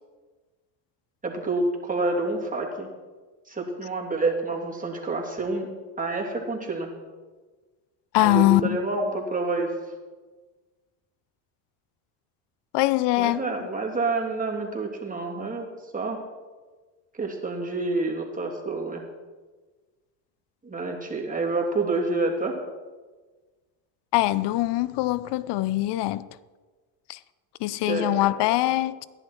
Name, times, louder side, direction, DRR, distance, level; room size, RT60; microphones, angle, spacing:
voice 1, 1.2-2.9 3.5-5.7 6.0-6.9 8.2-9.7 13.2-15.7 15.9-16.2 17.1-19.0 20.6-22.5 27.9-28.7, right 3 dB, 15° right, 0 dB, 3.1 m, -28 dB
voice 2, 8.1-8.8 12.7-13.4 24.1-26.3 27.1-27.2 27.6-29.1, left 17 dB, 60° left, 17 dB, 0.7 m, -23 dB
15.0 x 11.0 x 4.6 m, 1.3 s
supercardioid pair, 90°, 48 cm